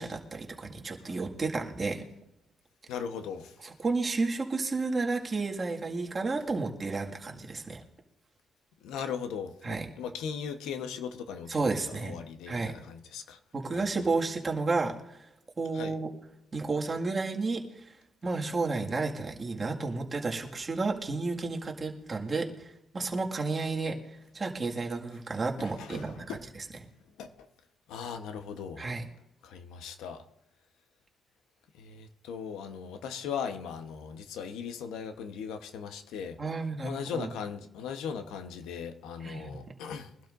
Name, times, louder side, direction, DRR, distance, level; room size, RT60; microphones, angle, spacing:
voice 1, 0.0-2.0 3.6-7.8 9.6-9.9 11.5-12.1 12.5-12.7 13.5-14.9 15.6-16.1 16.5-17.9 18.2-26.4 28.8-29.0 36.4-37.3 39.2-39.6, right 3 dB, 30° right, 0 dB, 2.0 m, -32 dB
voice 2, 2.9-3.5 8.8-13.4 13.7-13.9 15.7-15.9 25.6-26.4 27.2-27.5 27.9-28.8 29.4-30.2 31.7-36.4 36.8-40.1, left 7 dB, 90° left, 7 dB, 1.1 m, -38 dB
23.0 x 12.0 x 2.6 m, 0.91 s
cardioid pair, 90°, 0 cm